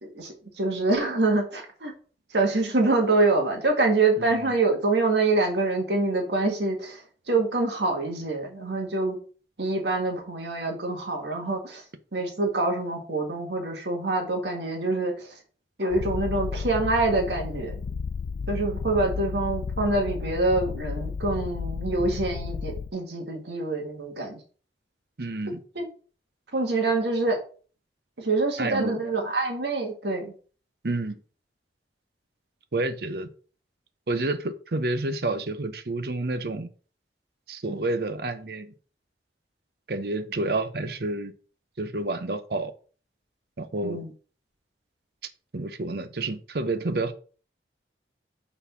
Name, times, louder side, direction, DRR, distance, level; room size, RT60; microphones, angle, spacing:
voice 1, 0.0-1.9 2.3-7.0 7.3-9.2 9.6-11.8 12.1-15.1 15.8-17.7 18.5-24.4 25.8-25.9 26.5-27.4 28.2-30.3 37.7-37.8 43.8-44.1, right 2 dB, 80° right, 1.7 m, -25 dB
voice 2, 4.2-4.5 25.2-25.6 28.6-29.0 30.8-31.2 32.7-33.3 34.1-36.7 37.5-38.7 39.9-41.3 41.8-42.7 43.6-44.0 45.5-47.1, right 2 dB, 60° right, 0.7 m, -29 dB
Purr, 15.9-22.9, left 5 dB, 85° left, 0.4 m, -33 dB
5.9 x 4.0 x 5.5 m
head